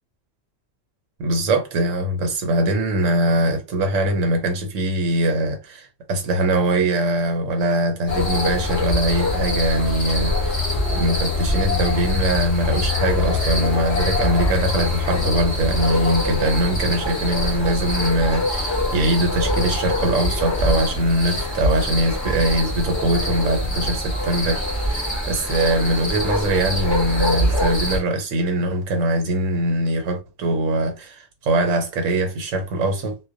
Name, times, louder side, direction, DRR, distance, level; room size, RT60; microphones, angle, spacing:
voice 1, 1.2-33.2, right 1 dB, 75° right, 1.0 m, -22 dB
sound 1, 8.1-28.0, left 2 dB, 25° left, 0.8 m, -23 dB
2.2 x 2.2 x 2.5 m
omnidirectional pair, 1.3 m